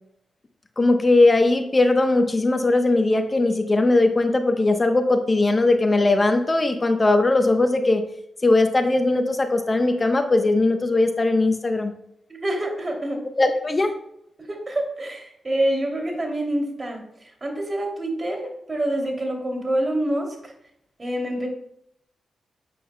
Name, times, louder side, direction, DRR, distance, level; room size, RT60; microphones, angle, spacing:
voice 1, 0.8-8.0 8.4-11.9 13.4-13.9, left 2 dB, 35° left, 6 dB, 1.0 m, -19 dB
voice 2, 12.3-13.2 14.4-20.5 21.0-21.5, right 1 dB, 35° right, 1 dB, 2.9 m, -27 dB
9.7 x 8.5 x 2.3 m, 0.74 s
supercardioid pair, 40°, 0 cm